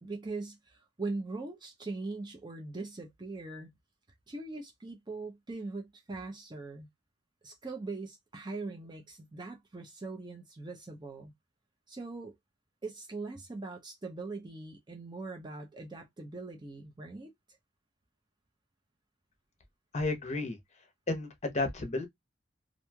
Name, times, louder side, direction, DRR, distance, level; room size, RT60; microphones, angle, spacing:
voice 1, 0.0-3.7 4.3-6.9 7.4-11.3 11.9-12.3 12.8-17.3, right 3 dB, 25° right, 0.5 m, -41 dB
voice 2, 19.9-20.6 21.1-22.1, left 2 dB, 40° left, 0.8 m, -32 dB
3.0 x 2.5 x 2.2 m
head